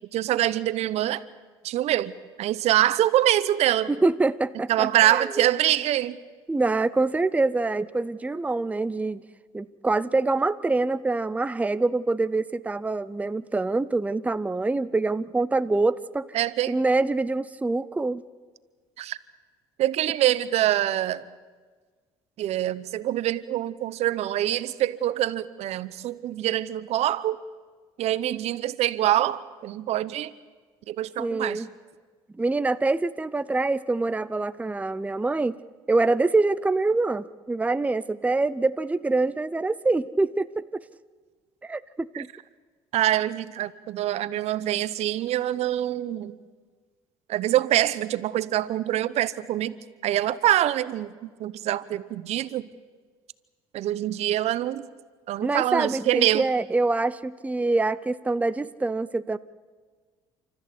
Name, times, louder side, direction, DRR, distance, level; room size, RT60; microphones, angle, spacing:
voice 1, 0.1-1.2 1.6-2.1 2.4-3.9 4.7-6.2 16.3-16.8 19.0-19.2 19.8-21.2 22.4-27.4 28.0-30.3 30.9-31.6 42.1-42.2 42.9-46.3 47.3-49.7 50.0-52.7 53.7-54.9 55.3-56.5, right 13 dB, 60° right, 16 dB, 0.9 m, -25 dB
voice 2, 3.9-5.5 6.5-9.2 9.5-16.3 16.7-18.2 31.2-31.7 32.4-35.6 35.9-40.8 41.6-42.3 55.4-59.4, right 3 dB, 10° right, 14 dB, 0.7 m, -25 dB
29.5 x 14.0 x 8.5 m, 1.5 s
supercardioid pair, 75°, 12 cm